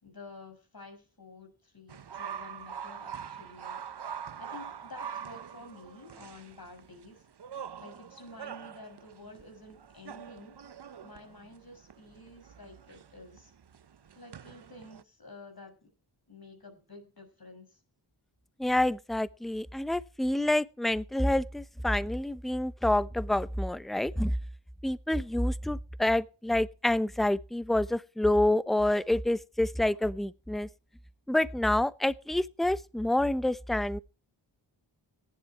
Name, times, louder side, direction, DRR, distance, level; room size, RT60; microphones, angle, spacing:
voice 1, 0.0-4.1 4.4-7.3 7.8-10.6 11.0-13.5 14.2-15.9 16.3-17.8, left 2 dB, 50° left, 6.4 m, -50 dB
sound 1, 1.9-15.0, right 8 dB, 55° right, 0.8 m, -44 dB
voice 2, 18.6-24.3 24.8-30.7 31.3-34.0, left 1 dB, ahead, 0.8 m, -28 dB
18.0 x 11.0 x 4.6 m
wide cardioid pair, 65°, 47 cm